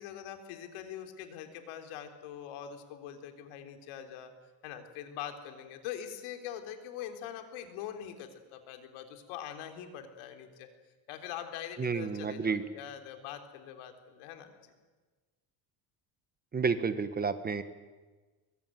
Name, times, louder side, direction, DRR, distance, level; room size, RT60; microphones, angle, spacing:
voice 1, 0.0-4.3 4.6-10.7 11.1-14.7, left 10 dB, 85° left, 6 dB, 3.6 m, -43 dB
voice 2, 11.8-12.6 16.5-17.6, right 5 dB, 20° right, 11 dB, 1.1 m, -30 dB
23.0 x 22.5 x 9.2 m, 1.3 s
cardioid pair, 155°, 48 cm